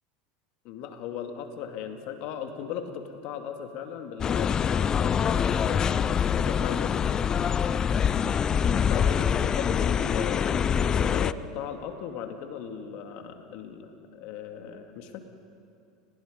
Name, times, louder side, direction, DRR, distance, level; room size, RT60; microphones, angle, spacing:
voice 1, 0.6-7.2 8.5-15.2, left 8 dB, 60° left, 5 dB, 2.4 m, -37 dB
sound 1, 4.2-11.3, left 7 dB, 30° left, 0.5 m, -25 dB
29.5 x 19.5 x 5.3 m, 2.5 s
hypercardioid pair, 90°, 2 cm